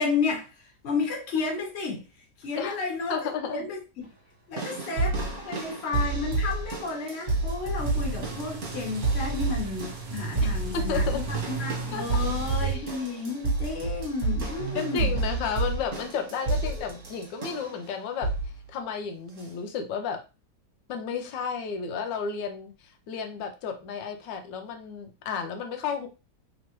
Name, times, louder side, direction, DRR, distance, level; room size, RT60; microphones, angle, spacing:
voice 1, 0.0-2.0 2.4-3.2 3.5-4.1 4.5-15.1, left 4 dB, 45° left, 1.2 m, -32 dB
voice 2, 3.1-3.6 5.5-5.6 10.7-11.2 11.9-12.1 12.6-12.8 14.7-18.3 18.7-20.2 20.9-26.1, left 6 dB, 90° left, 1.3 m, -32 dB
sound 1, 4.6-17.8 18.2-18.6 19.4-19.5, right 3 dB, 45° right, 1.5 m, -30 dB
sound 2, 7.8-12.7, right 6 dB, 60° right, 1.2 m, -36 dB
3.5 x 3.0 x 2.9 m
omnidirectional pair, 1.9 m